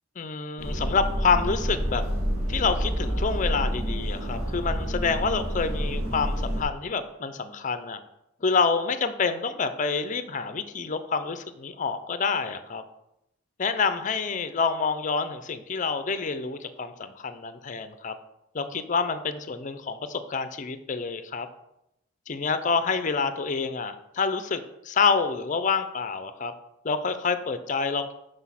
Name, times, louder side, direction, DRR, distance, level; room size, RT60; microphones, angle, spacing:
voice 1, 0.2-2.0 2.5-8.0 8.4-12.8 13.6-18.1 18.5-21.5 22.3-26.5 26.8-28.1, left 5 dB, 40° left, 10 dB, 0.5 m, -27 dB
sound 1, 0.6-6.6, equal, 85° right, 1.9 m, -28 dB
6.1 x 5.1 x 5.7 m, 0.85 s
head